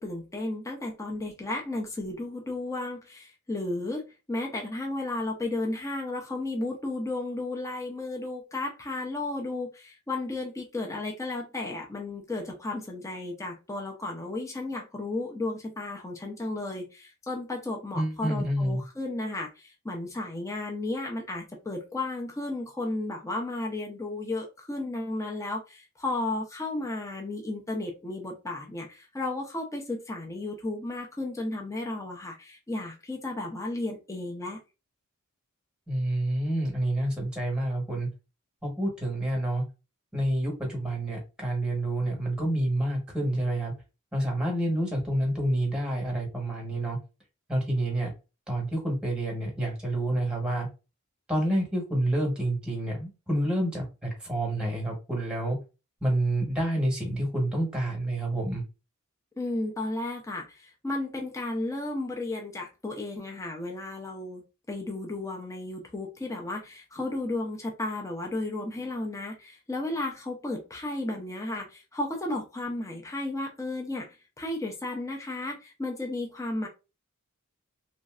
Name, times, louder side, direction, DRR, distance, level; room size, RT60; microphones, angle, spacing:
voice 1, 0.0-34.6 59.4-64.4 64.7-76.7, left 2 dB, 15° left, 0.5 m, -33 dB
voice 2, 17.9-18.8 35.9-38.1 38.6-39.6 40.1-43.7 44.1-47.0 47.5-48.1 48.5-50.7 51.3-55.6 56.0-58.6, right 1 dB, 5° right, 1.1 m, -28 dB
3.1 x 2.6 x 2.4 m
head